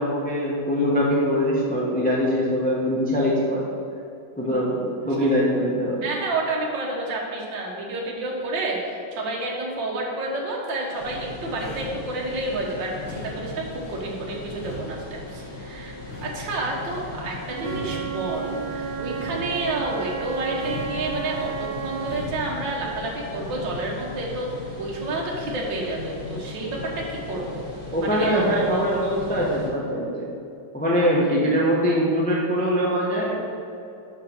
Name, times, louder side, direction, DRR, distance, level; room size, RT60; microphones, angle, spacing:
voice 1, 0.0-3.6 4.4-6.1 27.9-30.1 30.7-33.3, equal, 5° left, -5 dB, 0.8 m, -22 dB
voice 2, 6.0-15.9 16.2-27.6 28.0-28.5, right 2 dB, 65° right, -3 dB, 1.9 m, -30 dB
sound 1, 10.6-11.1 11.5-12.6 13.0-14.1 14.5-15.6 16.0-17.1 17.5-18.6 19.0-20.1 20.5-21.5 22.0-22.6, left 1 dB, 75° left, 2.2 m, -41 dB
sound 2, 10.9-29.7, left 3 dB, 55° left, 2.5 m, -38 dB
Wind instrument woodwind instrument, 17.5-22.3, right 9 dB, 85° right, 1.4 m, -33 dB
6.7 x 5.5 x 6.4 m, 2.6 s
omnidirectional pair, 2.2 m